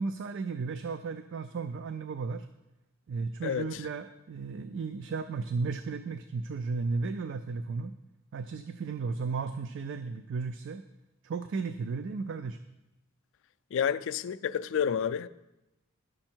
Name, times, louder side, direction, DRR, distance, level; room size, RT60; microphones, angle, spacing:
voice 1, 0.0-2.5 3.1-7.9 8.3-10.8 11.2-12.6, right 4 dB, 60° right, 0.4 m, -34 dB
voice 2, 13.7-15.3, left 8 dB, 65° left, 0.3 m, -29 dB
10.5 x 6.4 x 4.5 m
head